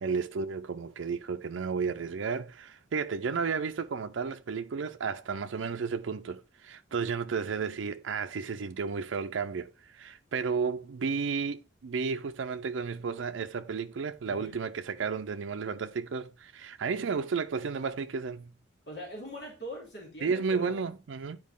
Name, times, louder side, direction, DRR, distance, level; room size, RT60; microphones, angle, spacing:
voice 1, 0.0-18.5 20.2-21.4, right 5 dB, 85° right, 0.4 m, -33 dB
voice 2, 14.2-14.6 18.9-20.8, equal, 60° left, 2.7 m, -42 dB
9.5 x 4.6 x 3.5 m
head